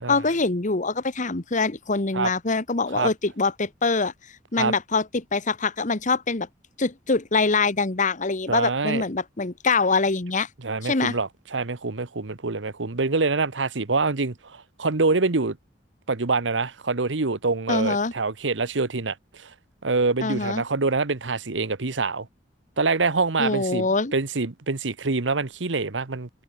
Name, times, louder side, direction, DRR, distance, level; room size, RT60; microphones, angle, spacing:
voice 1, 0.1-4.1 4.5-6.5 6.8-10.5 10.8-11.2 17.7-18.1 20.2-20.6 23.4-24.1, left 3 dB, 45° left, 1.4 m, -24 dB
voice 2, 8.5-9.0 10.6-15.6 16.1-19.5 19.8-22.3 22.8-26.3, right 3 dB, 85° right, 1.2 m, -25 dB
head